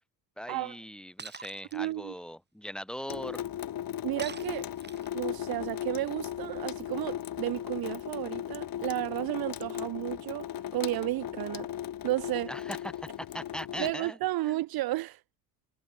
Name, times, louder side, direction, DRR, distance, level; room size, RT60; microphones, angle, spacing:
voice 1, 0.4-3.5 12.5-14.2 14.4-14.6, equal, ahead, 6.1 m, -40 dB
Shatter, 1.2-1.8 4.2-5.2, right 4 dB, 25° right, 5.1 m, -44 dB
voice 2, 1.7-2.1 4.0-4.7 5.1-11.7 12.0-12.5 13.8-15.2, right 17 dB, 55° right, 0.9 m, -32 dB
Water tap faucet / Sink (filling or washing) / Drip, 3.1-13.9, left 11 dB, 50° left, 3.5 m, -37 dB
supercardioid pair, 85°, 44 cm